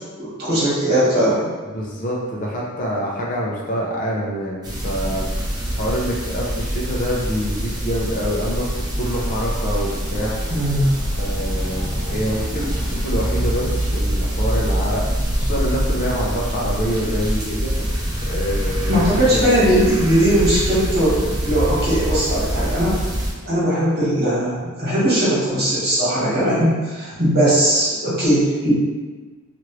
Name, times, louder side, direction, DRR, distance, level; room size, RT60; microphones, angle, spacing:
voice 1, 0.2-1.4 10.5-10.9 18.9-23.0 23.4-28.7, right 1 dB, 50° right, -9 dB, 1.3 m, -19 dB
voice 2, 1.6-5.3 5.7-10.5 11.2-15.0 15.4-19.5, equal, 40° left, -3 dB, 0.5 m, -26 dB
sound 1, 4.6-23.3, equal, 20° right, 0.5 m, -24 dB
2.9 x 2.5 x 3.1 m, 1.3 s
head